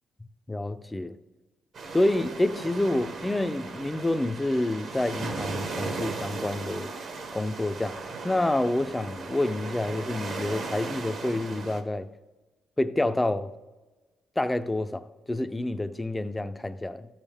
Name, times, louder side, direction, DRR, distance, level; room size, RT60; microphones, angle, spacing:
voice 1, 0.5-1.2 1.9-6.9 7.3-12.1 12.8-13.5 14.4-17.1, left 1 dB, 15° left, 0.5 m, -28 dB
sound 1, 1.7-11.8, right 3 dB, 60° right, 1.2 m, -37 dB
14.0 x 7.3 x 3.5 m
cardioid pair, 90°, 0 cm